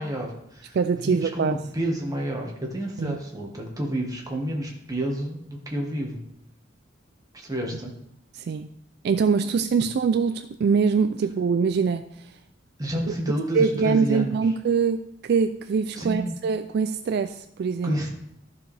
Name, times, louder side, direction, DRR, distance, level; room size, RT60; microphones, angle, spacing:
voice 1, 0.0-6.2 7.3-7.9 12.8-14.4 15.9-16.3 17.8-18.1, right 1 dB, 20° right, 0 dB, 1.5 m, -30 dB
voice 2, 0.7-1.6 3.0-3.2 8.3-8.7 9.0-12.1 13.5-17.9, right 5 dB, 60° right, 10 dB, 0.3 m, -23 dB
13.5 x 4.7 x 3.4 m, 0.76 s
head